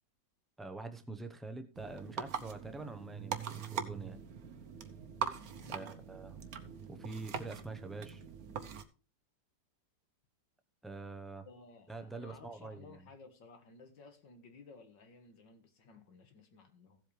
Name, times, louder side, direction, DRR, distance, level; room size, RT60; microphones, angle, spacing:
voice 1, 0.6-4.2 5.7-6.4 6.9-8.2 10.8-11.5 11.9-13.1, right 3 dB, ahead, 0.4 m, -45 dB
sound 1, 1.7-8.8, right 7 dB, 60° right, 1.3 m, -42 dB
voice 2, 5.5-5.9 11.5-17.0, left 4 dB, 90° left, 2.4 m, -56 dB
15.5 x 7.7 x 3.3 m
omnidirectional pair, 1.9 m